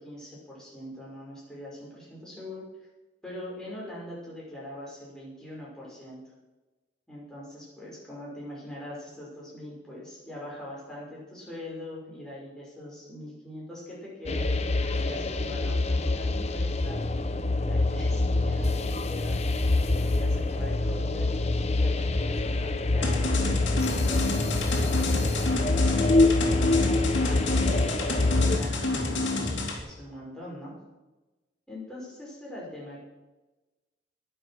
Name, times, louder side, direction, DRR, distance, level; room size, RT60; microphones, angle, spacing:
voice 1, 0.0-2.7 3.2-6.2 7.1-14.5 15.0-17.0 17.5-19.4 20.0-23.2 23.9-30.8 31.7-33.0, left 1 dB, 5° left, -6 dB, 6.0 m, -42 dB
sound 1, 14.3-28.6, left 2 dB, 35° left, 0.8 m, -25 dB
sound 2, 23.0-29.8, left 2 dB, 70° left, 3.0 m, -29 dB
21.0 x 7.7 x 6.2 m, 1.1 s
head